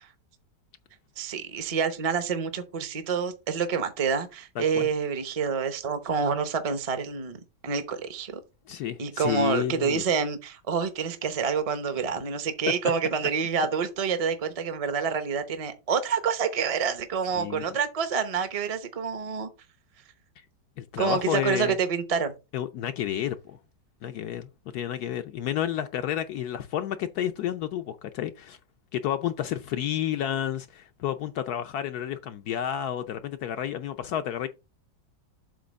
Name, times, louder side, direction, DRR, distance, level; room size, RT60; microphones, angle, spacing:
voice 1, 1.2-7.4 7.6-8.4 9.0-19.5 21.0-22.3, right 6 dB, 30° right, 0.7 m, -27 dB
voice 2, 4.6-4.9 8.7-10.0 17.3-17.6 20.4-20.5 20.8-21.8 22.5-23.6 24.0-28.6 28.9-34.5, left 10 dB, 70° left, 1.0 m, -30 dB
7.7 x 3.0 x 6.2 m
omnidirectional pair, 1.9 m